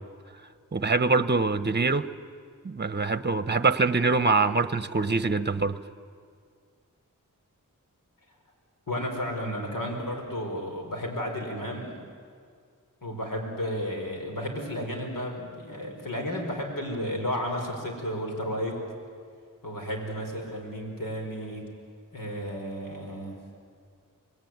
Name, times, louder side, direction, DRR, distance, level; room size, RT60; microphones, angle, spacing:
voice 1, 0.7-2.1 2.6-5.8, right 3 dB, 30° right, 14 dB, 0.9 m, -24 dB
voice 2, 8.9-12.0 13.0-18.9 19.6-21.7 22.1-23.4, equal, 80° left, 2 dB, 5.2 m, -33 dB
26.0 x 20.5 x 9.5 m, 2.1 s
wide cardioid pair, 70°, 33 cm